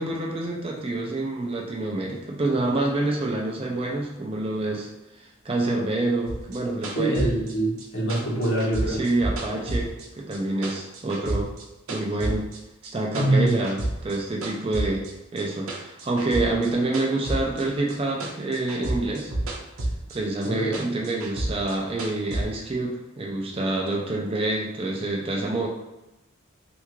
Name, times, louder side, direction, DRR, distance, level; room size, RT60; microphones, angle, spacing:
voice 1, 0.0-4.9 5.4-7.2 8.9-11.5 11.9-12.5 12.8-19.3 20.1-25.7, right 2 dB, 25° right, -1 dB, 0.4 m, -27 dB
sound 1, 6.3-10.4 10.6-12.6 12.8-14.2 14.4-18.0 18.2-20.2 20.4-22.4, right 1 dB, 75° right, 0.6 m, -30 dB
voice 2, 7.0-9.0 13.2-13.5 20.4-20.7, right 1 dB, 70° left, -7 dB, 1.4 m, -24 dB
3.4 x 2.4 x 3.0 m, 0.99 s
head